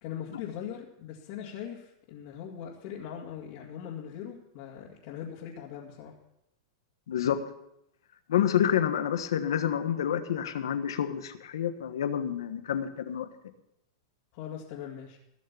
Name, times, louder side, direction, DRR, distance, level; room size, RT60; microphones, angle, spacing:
voice 1, 0.0-6.2 14.3-15.2, left 9 dB, 50° left, -3 dB, 2.3 m, -40 dB
voice 2, 7.1-7.4 8.3-13.3, left 9 dB, 85° left, 9 dB, 1.4 m, -28 dB
17.0 x 6.6 x 7.1 m, 0.82 s
supercardioid pair, 145°, 2 cm